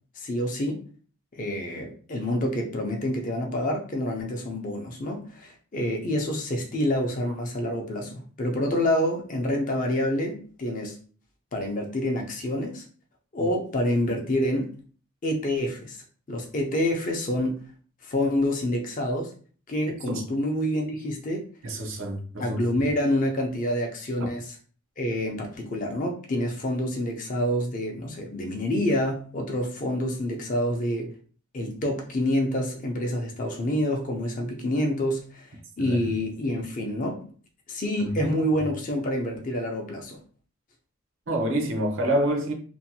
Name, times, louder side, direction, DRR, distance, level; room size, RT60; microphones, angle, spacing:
voice 1, 0.2-0.8 1.3-11.0 11.5-12.8 13.3-14.7 15.2-16.0 16.3-17.6 18.0-19.3 19.7-21.4 22.4-24.6 25.0-31.1 31.5-35.5 35.8-37.3 37.7-40.2, left 1 dB, 35° left, 0.5 m, -27 dB
voice 2, 21.6-22.6 35.8-36.0 38.2-38.4 41.3-42.5, right 1 dB, 60° right, 0.6 m, -27 dB
2.6 x 2.2 x 2.7 m
head